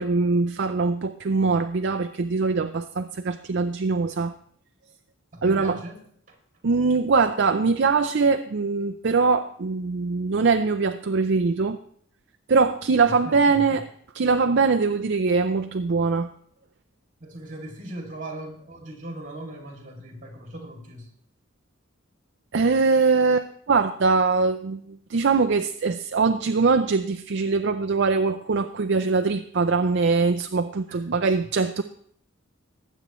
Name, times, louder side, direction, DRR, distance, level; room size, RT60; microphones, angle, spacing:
voice 1, 0.0-4.3 5.4-5.8 6.6-11.8 12.5-13.9 14.1-16.3 22.5-31.8, right 4 dB, 55° right, 8 dB, 0.5 m, -22 dB
voice 2, 5.3-6.0 6.3-6.4 13.1-13.8 17.2-21.1 30.9-31.5, right 1 dB, 35° right, 1 dB, 2.5 m, -39 dB
19.5 x 8.3 x 3.1 m, 0.62 s
head